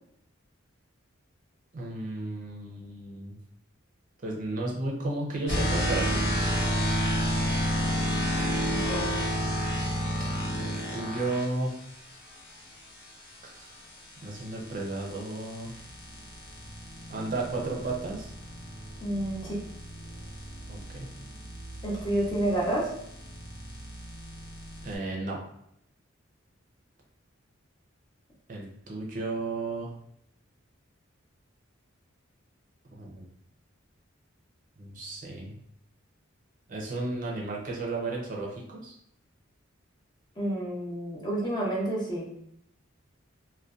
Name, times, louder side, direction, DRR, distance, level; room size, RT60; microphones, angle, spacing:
voice 1, 1.7-3.4 4.2-6.2 10.6-11.7 13.4-13.7 14.2-15.8 17.1-18.3 20.7-21.1 24.8-25.4 28.5-29.9 32.9-33.2 34.8-35.6 36.7-39.0, right 2 dB, 40° right, -2 dB, 0.5 m, -33 dB
sound 1, 5.5-11.5 13.9-25.0, equal, 60° left, 0.7 m, -31 dB
voice 2, 8.7-9.1 19.0-19.6 21.8-22.9 40.4-42.3, right 1 dB, 20° left, -4 dB, 0.6 m, -29 dB
2.5 x 2.1 x 2.3 m, 0.74 s
head